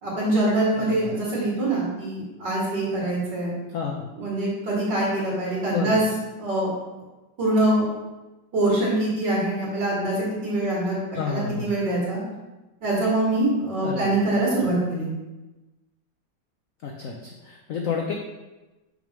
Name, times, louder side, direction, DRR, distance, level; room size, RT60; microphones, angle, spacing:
voice 1, 0.0-3.5 4.2-6.0 6.4-6.7 7.4-7.9 8.5-12.2 12.8-15.1, right 1 dB, 65° right, -6 dB, 2.8 m, -24 dB
voice 2, 0.8-1.2 3.7-4.1 5.7-6.0 11.2-11.7 13.8-14.1 16.8-18.1, left 6 dB, 70° left, 1 dB, 0.8 m, -30 dB
6.0 x 3.5 x 6.0 m, 1.1 s
omnidirectional pair, 2.1 m